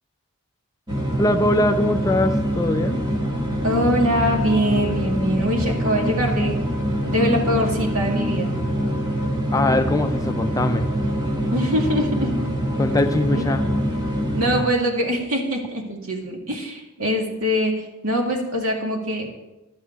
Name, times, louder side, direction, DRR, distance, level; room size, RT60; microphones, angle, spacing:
sound 1, 0.9-14.6, equal, 20° right, 1.5 m, -24 dB
voice 1, 1.2-3.0 9.5-10.9 12.8-13.7, left 1 dB, 15° left, 7 dB, 0.4 m, -21 dB
voice 2, 3.6-6.6 7.0-8.5 11.5-12.3 13.3-13.4 14.3-17.7 18.0-19.3, equal, 85° right, 0 dB, 2.2 m, -23 dB
11.0 x 9.0 x 4.6 m, 1.0 s
head